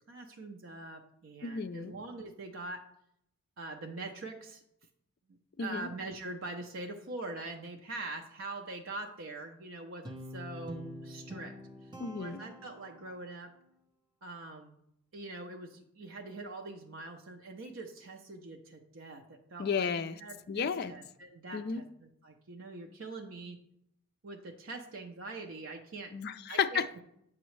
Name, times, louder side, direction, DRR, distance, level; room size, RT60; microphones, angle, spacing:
voice 1, 0.1-2.8 3.6-4.6 5.6-11.6 12.2-13.5 14.2-14.8 15.1-19.9 20.2-23.6 24.2-26.1 26.5-26.8, right 2 dB, 60° right, 3 dB, 0.5 m, -43 dB
voice 2, 1.4-1.9 5.6-5.9 12.0-12.4 19.6-20.2 20.5-20.9 21.5-21.8 26.1-27.0, left 6 dB, 45° left, 10 dB, 0.3 m, -33 dB
Guitar, 10.1-13.3, equal, 20° right, 0.7 m, -46 dB
7.8 x 6.0 x 3.2 m, 0.74 s
head